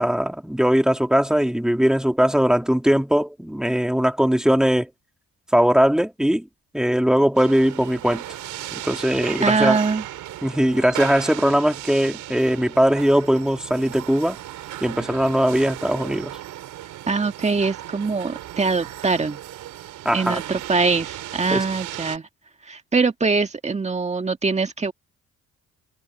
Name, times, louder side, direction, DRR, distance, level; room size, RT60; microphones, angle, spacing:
voice 1, 0.0-4.9 5.5-6.5 6.7-8.2 8.7-9.8 10.4-14.4 14.8-16.4 20.0-20.4 21.5-21.6, equal, ahead, 2.8 m, -20 dB
sound 1, 7.4-22.2, right 13 dB, 85° right, 5.3 m, -36 dB
voice 2, 9.4-10.0 17.1-19.4 20.1-22.3 22.7-24.9, right 4 dB, 20° right, 1.9 m, -23 dB
cardioid pair, 90°, 30 cm